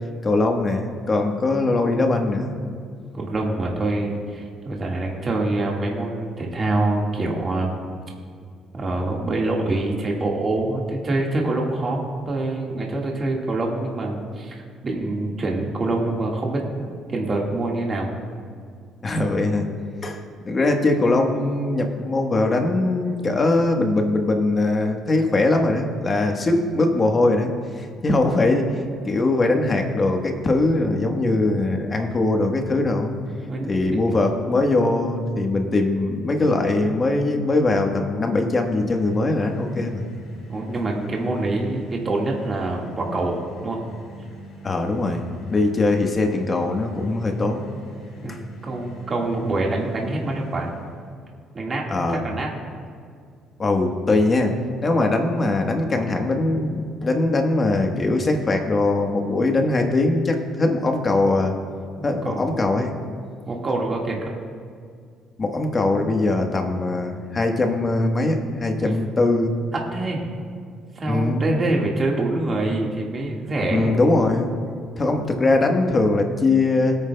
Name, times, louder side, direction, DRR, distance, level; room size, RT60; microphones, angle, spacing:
voice 1, 0.2-2.6 19.0-19.7 20.0-28.7 29.0-33.2 33.7-40.1 44.6-47.6 48.3-48.4 51.9-52.2 53.6-54.5 54.8-61.5 62.0-62.9 65.4-69.5 71.1-71.5 73.7-74.5 75.0-77.0, left 2 dB, 30° left, 3 dB, 1.2 m, -21 dB
voice 2, 3.1-7.9 8.7-16.9 17.1-18.2 33.5-34.0 40.5-43.8 48.2-50.7 51.5-52.6 62.0-62.4 63.5-64.2 68.8-68.9 69.9-70.3 70.9-74.0, right 2 dB, 30° right, -1 dB, 1.7 m, -25 dB
sound 1, 38.5-51.1, equal, 65° left, 2.9 m, -42 dB
21.0 x 9.1 x 2.2 m, 2.2 s
cardioid pair, 125°, 0 cm